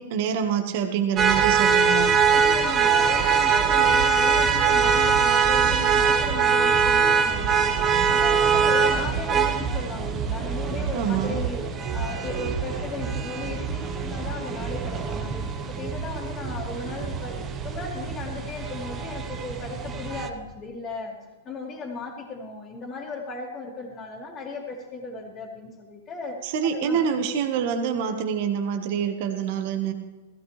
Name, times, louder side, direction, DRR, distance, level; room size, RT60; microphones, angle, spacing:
voice 1, 0.0-2.1 10.9-11.4 26.4-29.9, right 7 dB, 50° right, 5 dB, 1.4 m, -26 dB
sound 1, 1.2-20.3, right 6 dB, 20° right, 1.1 m, -23 dB
voice 2, 2.3-11.7 11.9-17.4 17.6-21.2 21.4-27.0, left 3 dB, 20° left, -7 dB, 2.4 m, -36 dB
16.0 x 15.5 x 3.3 m, 1.2 s
hypercardioid pair, 150°, 0 cm